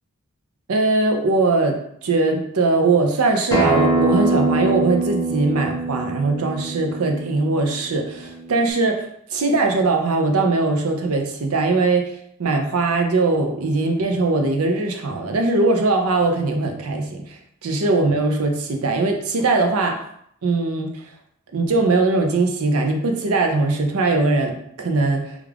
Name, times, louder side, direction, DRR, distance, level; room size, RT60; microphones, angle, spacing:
voice 1, 0.7-12.1 12.4-20.0 20.4-21.0 21.5-25.3, right 3 dB, 85° right, 4 dB, 0.6 m, -20 dB
Acoustic guitar, 3.5-8.7, right 2 dB, 15° left, 0.8 m, -23 dB
3.5 x 2.4 x 3.4 m, 0.71 s
head